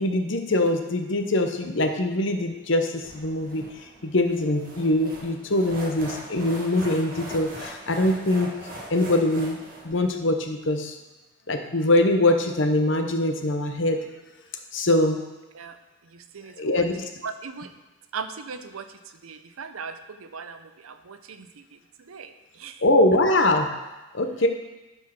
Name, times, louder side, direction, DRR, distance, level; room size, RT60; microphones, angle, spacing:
voice 1, 0.0-3.6 4.0-8.5 8.9-9.6 9.8-10.9 11.5-14.0 14.7-15.2 16.6-17.0 22.8-23.7 24.1-24.5, left 1 dB, 60° left, 5 dB, 0.9 m, -23 dB
sound 1, 3.0-10.0, right 1 dB, 40° right, 1.6 m, -41 dB
voice 2, 16.1-16.9 17.2-17.7 18.1-18.9 19.2-21.8 22.0-22.8, right 5 dB, 85° right, 10 dB, 0.6 m, -39 dB
10.5 x 4.5 x 5.9 m, 1.1 s
head